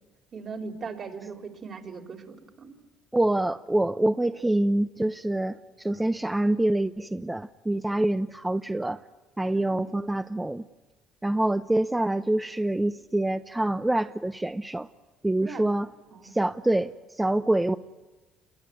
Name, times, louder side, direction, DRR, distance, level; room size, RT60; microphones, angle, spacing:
voice 1, 0.3-2.8 7.9-8.1 9.5-9.9 15.4-15.7 16.1-16.4, right 5 dB, 50° right, 4.3 m, -39 dB
voice 2, 3.1-9.0 9.4-10.6 11.2-14.9 15.2-15.9 16.2-17.8, right 1 dB, 10° right, 0.9 m, -26 dB
29.0 x 21.5 x 9.4 m
supercardioid pair, 70°, 0 cm